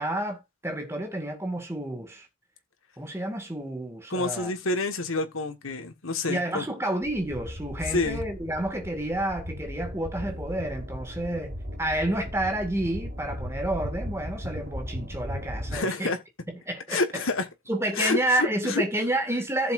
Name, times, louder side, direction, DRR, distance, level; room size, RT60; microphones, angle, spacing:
voice 1, 0.0-2.3 3.0-4.5 6.3-16.1 16.7-17.2 17.7-19.7, right 1 dB, 15° right, 2.1 m, -30 dB
voice 2, 4.1-6.7 7.9-8.2 15.7-16.2 16.9-17.5 17.9-18.8, left 3 dB, 85° left, 1.6 m, -28 dB
sound 1, 7.0-15.8, equal, 45° right, 4.1 m, -37 dB
15.0 x 7.1 x 2.6 m
head